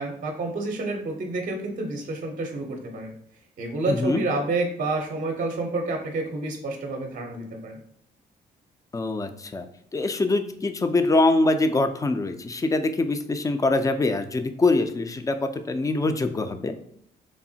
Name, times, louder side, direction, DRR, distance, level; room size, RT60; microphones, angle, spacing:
voice 1, 0.0-3.1 3.6-7.8, right 2 dB, 45° right, 2 dB, 0.6 m, -29 dB
voice 2, 3.9-4.2 8.9-9.7 9.9-15.4 15.7-16.8, left 2 dB, 15° left, 8 dB, 0.3 m, -23 dB
3.0 x 2.0 x 2.7 m, 0.71 s
supercardioid pair, 60°, 19 cm